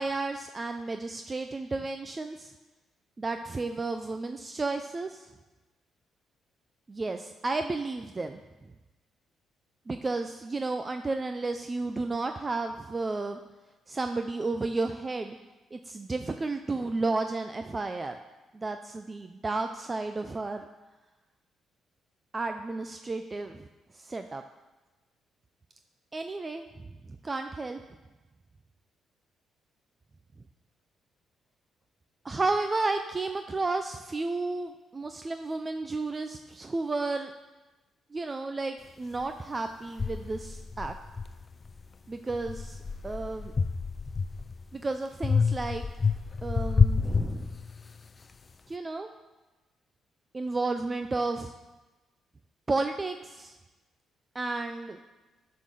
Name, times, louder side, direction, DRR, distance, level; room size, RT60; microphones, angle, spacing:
voice 1, 0.0-2.5 3.2-5.3 6.9-8.4 9.9-13.4 13.9-15.4 15.7-18.2 18.5-20.7 22.3-23.7 23.9-24.4 26.1-26.7 27.1-27.8 32.2-37.3 38.1-40.9 42.1-43.5 44.7-45.9 46.4-47.6 48.7-49.1 50.3-51.5 52.7-53.6 54.3-55.0, right 3 dB, 25° right, 7 dB, 0.4 m, -32 dB
sound 1, 39.2-39.3 40.0-41.8 42.3-44.6 45.2-48.0, left 5 dB, 35° left, 0.4 m, -28 dB
10.5 x 3.8 x 6.3 m, 1.1 s
cardioid pair, 90°, 0 cm